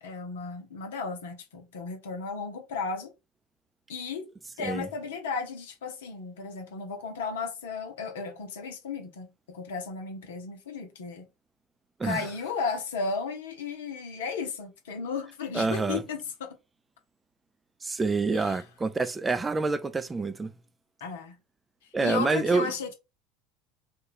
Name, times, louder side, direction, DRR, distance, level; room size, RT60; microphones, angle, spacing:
voice 1, 0.0-3.1 3.9-4.3 4.6-11.2 12.0-16.6 18.3-18.6 21.0-21.4 22.0-22.9, left 5 dB, 65° left, 0.7 m, -34 dB
voice 2, 15.5-16.0 17.8-20.5 21.9-22.7, right 3 dB, 15° right, 0.4 m, -27 dB
3.1 x 2.3 x 3.5 m
figure-of-eight pair, 70°, 0 cm